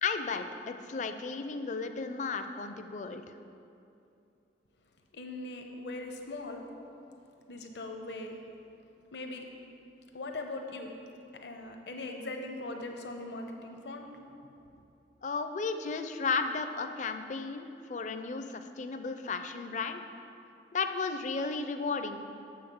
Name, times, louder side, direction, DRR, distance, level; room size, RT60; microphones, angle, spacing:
voice 1, 0.0-3.2 15.2-20.0 20.7-22.2, left 4 dB, 45° left, 8 dB, 0.4 m, -34 dB
voice 2, 5.1-6.7 7.5-8.4 9.1-9.5 10.1-11.0 11.3-14.1, left 2 dB, 75° left, 3 dB, 0.8 m, -40 dB
7.2 x 5.7 x 7.0 m, 2.7 s
head